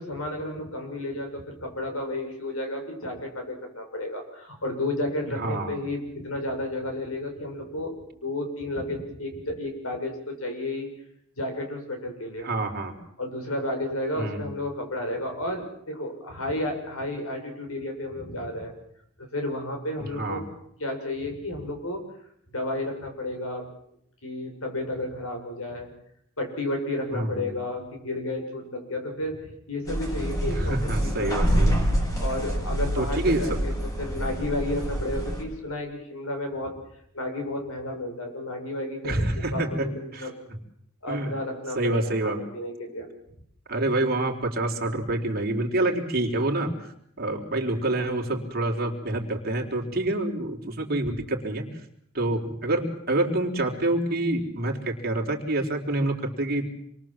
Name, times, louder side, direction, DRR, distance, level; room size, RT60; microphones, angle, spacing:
voice 1, 0.0-7.9 8.2-10.9 11.4-12.5 13.2-18.7 19.2-20.4 20.8-22.0 22.5-23.6 24.2-25.9 26.4-31.7 32.2-33.7 34.0-36.7 37.1-40.3 41.0-43.1, left 1 dB, 90° left, 4 dB, 7.1 m, -32 dB
voice 2, 5.3-5.8 12.4-12.9 14.2-14.4 20.2-20.4 27.1-27.5 30.5-31.8 33.0-33.6 39.0-40.3 41.1-41.3 41.8-42.4 43.7-46.7 47.2-51.7 52.1-56.7, right 2 dB, 50° right, 1 dB, 4.1 m, -27 dB
sound 1, 29.9-35.4, equal, 15° left, 6.1 m, -26 dB
28.0 x 23.0 x 7.6 m, 0.72 s
head